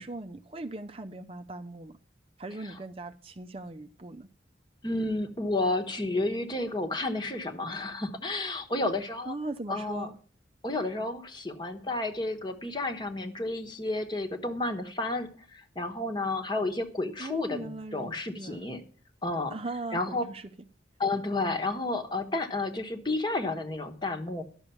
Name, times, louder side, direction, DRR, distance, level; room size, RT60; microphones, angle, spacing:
voice 1, 0.0-2.0 2.4-4.3 9.3-10.1 17.2-18.6 19.5-20.5, right 2 dB, 30° right, 0.5 m, -39 dB
voice 2, 4.8-9.3 9.7-10.1 10.6-18.8 19.2-19.5 19.9-20.2 21.0-24.4, left 2 dB, 25° left, 1.2 m, -31 dB
11.5 x 6.6 x 6.9 m
head